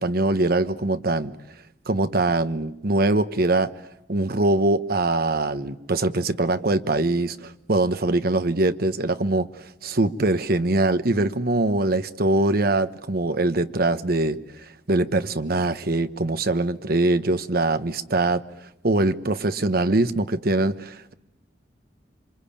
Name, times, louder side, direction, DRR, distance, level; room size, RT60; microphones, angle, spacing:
voice 1, 0.0-1.3 1.9-3.7 4.1-9.5 9.8-14.4 14.9-18.4 18.8-21.1, right 2 dB, 55° right, 1.1 m, -22 dB
27.5 x 24.5 x 8.7 m
head